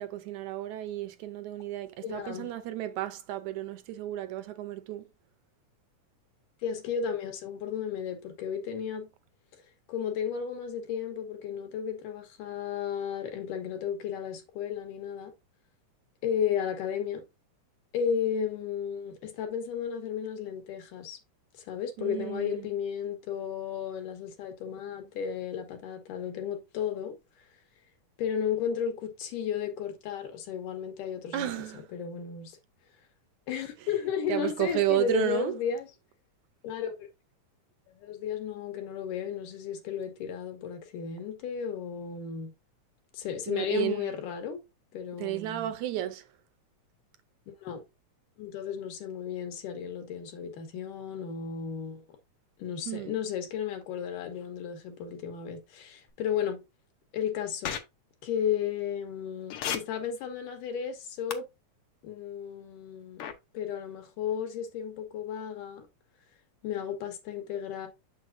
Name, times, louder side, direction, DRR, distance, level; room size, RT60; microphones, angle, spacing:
voice 1, 0.0-5.1 22.0-22.7 31.3-31.9 33.8-33.9 34.3-35.6 43.5-44.1 45.2-46.3 52.9-53.1, right 13 dB, 75° right, 1.9 m, -32 dB
voice 2, 2.0-2.5 6.6-9.1 9.9-15.3 16.2-17.2 17.9-21.2 21.6-27.2 28.2-31.5 31.9-32.6 33.5-35.9 36.6-37.1 37.9-42.5 43.1-44.6 44.9-45.7 47.6-47.8 48.4-52.0 52.6-56.6 57.1-57.8 58.2-61.5 62.0-63.3 63.5-65.9 66.6-67.9, left 8 dB, 85° left, 3.1 m, -34 dB
sound 1, 57.6-57.8 59.5-59.8 61.3-61.4 63.2-63.3, left 9 dB, 70° left, 1.4 m, -31 dB
7.1 x 6.3 x 2.6 m
omnidirectional pair, 3.6 m